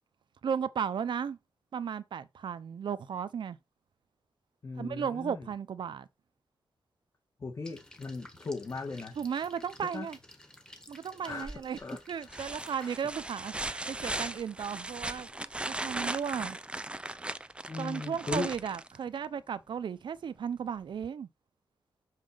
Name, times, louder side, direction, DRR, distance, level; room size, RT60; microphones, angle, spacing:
voice 1, 0.4-1.4 1.7-3.6 4.8-6.1 9.2-10.2 10.9-11.8 12.1-15.3 15.7-16.6 17.8-21.3, right 7 dB, 70° right, 0.7 m, -35 dB
voice 2, 4.6-5.5 7.4-9.2 9.9-10.1 11.2-11.5 11.8-12.3 12.8-12.9 17.7-18.5, left 3 dB, 40° left, 1.7 m, -38 dB
sound 1, 7.7-13.0, left 1 dB, 10° left, 1.3 m, -53 dB
sound 2, 11.4-11.8 12.3-19.3 21.0-21.1, right 2 dB, 15° right, 0.4 m, -38 dB
6.3 x 5.7 x 5.1 m
wide cardioid pair, 110°, 8 cm